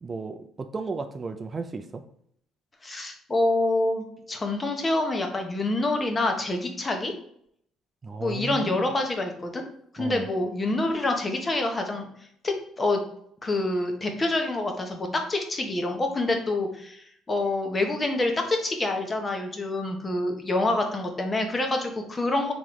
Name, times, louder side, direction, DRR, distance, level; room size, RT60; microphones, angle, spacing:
voice 1, 0.0-2.0 8.0-8.9 10.0-10.2, right 4 dB, 30° right, 6 dB, 0.3 m, -34 dB
voice 2, 2.8-7.1 8.2-9.6 9.9-12.1 12.4-13.0 13.4-22.5, left 2 dB, 25° left, 4 dB, 0.8 m, -27 dB
3.6 x 3.0 x 3.1 m, 0.67 s
supercardioid pair, 80°, 0 cm